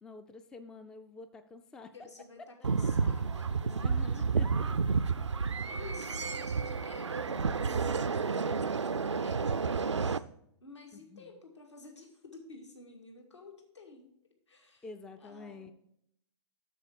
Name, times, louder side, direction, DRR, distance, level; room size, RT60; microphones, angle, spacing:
voice 1, 0.0-1.9 3.8-4.8 11.1-11.2 14.8-15.7, left 3 dB, 5° left, 10 dB, 0.3 m, -47 dB
voice 2, 1.9-4.2 5.7-10.2 10.6-14.1 14.5-14.9 15.2-15.7, left 3 dB, 75° left, 2 dB, 2.2 m, -51 dB
sound 1, 2.6-10.2, right 5 dB, 80° right, 0.4 m, -31 dB
7.6 x 6.9 x 4.8 m, 0.72 s
figure-of-eight pair, 120°, 15 cm